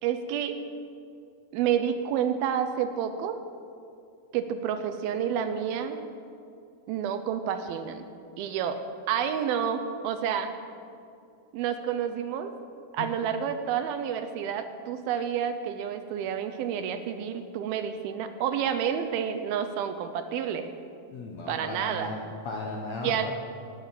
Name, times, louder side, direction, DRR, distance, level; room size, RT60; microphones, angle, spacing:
voice 1, 0.0-0.6 1.5-3.4 4.3-6.0 6.9-8.1 8.4-8.8 9.1-10.5 11.5-12.6 12.9-20.7 21.5-22.1 23.0-23.3, right 8 dB, 80° right, 9 dB, 2.4 m, -29 dB
voice 2, 21.1-23.3, left 3 dB, 70° left, -1 dB, 1.7 m, -36 dB
18.5 x 6.6 x 7.4 m, 2.5 s
omnidirectional pair, 4.5 m